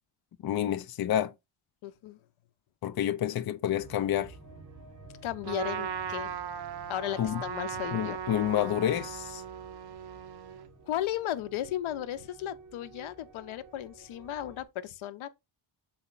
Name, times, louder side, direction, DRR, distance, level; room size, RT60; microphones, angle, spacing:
voice 1, 0.4-1.3 2.8-4.3 7.2-7.4 7.9-9.4, left 11 dB, 50° left, 0.6 m, -29 dB
voice 2, 1.8-2.2 5.2-6.3 6.9-8.2 10.8-15.3, left 12 dB, 85° left, 0.8 m, -35 dB
sound 1, 3.7-14.6, right 3 dB, 35° right, 1.9 m, -52 dB
Trumpet, 5.4-10.7, right 7 dB, 55° right, 0.8 m, -38 dB
7.1 x 4.2 x 3.9 m
wide cardioid pair, 150°, 47 cm